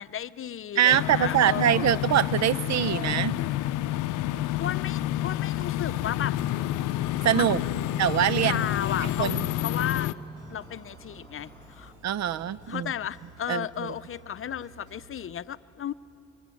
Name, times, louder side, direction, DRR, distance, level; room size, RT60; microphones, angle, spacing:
voice 1, 0.0-1.8 4.6-6.4 7.3-8.0 8.4-9.3 9.6-10.1 10.5-11.9 12.7-15.9, left 9 dB, 45° left, 14 dB, 0.7 m, -34 dB
voice 2, 0.8-3.4 7.2-7.6 8.0-8.7 9.2-9.4 12.0-12.9 13.5-13.7, right 10 dB, 65° right, 19 dB, 0.7 m, -23 dB
sound 1, 0.9-10.1, left 14 dB, 90° left, 0.6 m, -29 dB
sound 2, 1.8-15.3, right 3 dB, 80° right, 3.7 m, -53 dB
sound 3, 4.3-11.9, left 1 dB, 10° left, 5.2 m, -53 dB
24.5 x 24.0 x 8.5 m, 2.6 s
cardioid pair, 90°, 30 cm